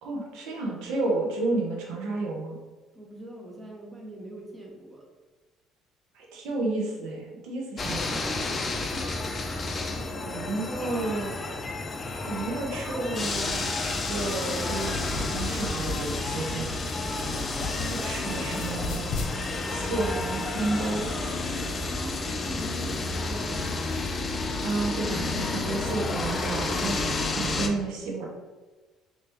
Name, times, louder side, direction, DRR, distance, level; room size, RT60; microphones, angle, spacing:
voice 1, 0.0-2.6 6.1-8.3 10.2-11.4 12.3-16.7 17.9-19.1 19.7-21.1 24.6-27.0 27.4-28.3, right 2 dB, 80° right, -1 dB, 0.9 m, -31 dB
voice 2, 2.9-5.0 8.9-9.1 10.0-10.6 17.7-18.4 21.8-23.9, right 1 dB, 15° right, -1 dB, 0.9 m, -42 dB
sound 1, 7.8-27.7, left 3 dB, 30° left, 0.5 m, -30 dB
sound 2, 14.7-18.1 18.4-19.3, left 3 dB, 75° left, 0.6 m, -35 dB
3.3 x 2.9 x 3.0 m, 1.3 s
cardioid pair, 95°, 0 cm